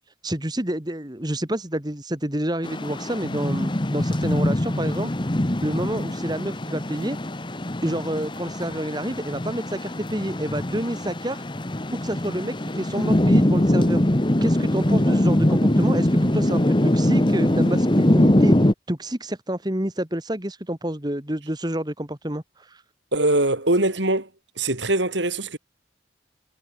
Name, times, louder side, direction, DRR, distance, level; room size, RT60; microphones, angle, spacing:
voice 1, 0.2-5.1 5.6-7.2 7.8-11.4 11.9-14.0 14.4-18.6 18.9-22.8, right 1 dB, 20° right, 2.0 m, -28 dB
sound 1, 2.6-18.7, left 1 dB, 25° left, 1.1 m, -22 dB
voice 2, 23.1-24.3 24.6-25.6, right 2 dB, 70° right, 4.8 m, -22 dB
head